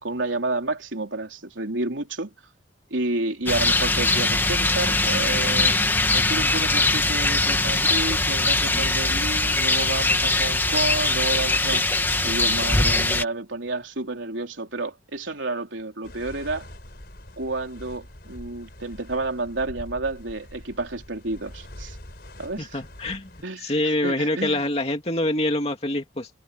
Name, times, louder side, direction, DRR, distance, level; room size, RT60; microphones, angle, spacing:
voice 1, 0.0-2.3 2.9-5.8 6.1-11.8 12.2-16.7 17.4-22.0 22.4-22.8 23.4-24.6, right 2 dB, 90° right, 3.7 m, -30 dB
Rain, 3.5-13.2, left 2 dB, 10° left, 1.4 m, -21 dB
sound 1, 16.0-23.4, left 1 dB, 55° left, 5.2 m, -43 dB
voice 2, 22.6-23.3 23.6-26.3, left 1 dB, 35° left, 2.6 m, -25 dB
head